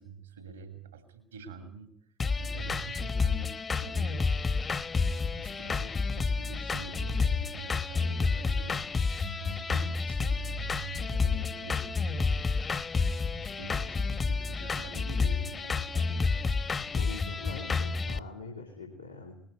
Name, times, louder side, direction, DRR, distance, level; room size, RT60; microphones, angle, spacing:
voice 1, 0.0-1.9 2.3-4.2 5.1-8.9 9.1-12.4 13.4-16.6, right 6 dB, 80° right, 8 dB, 2.7 m, -45 dB
sound 1, 2.2-18.2, left 4 dB, 30° left, 1.1 m, -30 dB
voice 2, 16.9-19.4, left 3 dB, 90° left, -3 dB, 3.0 m, -43 dB
20.5 x 14.0 x 9.4 m, 0.67 s
figure-of-eight pair, 50°, 0 cm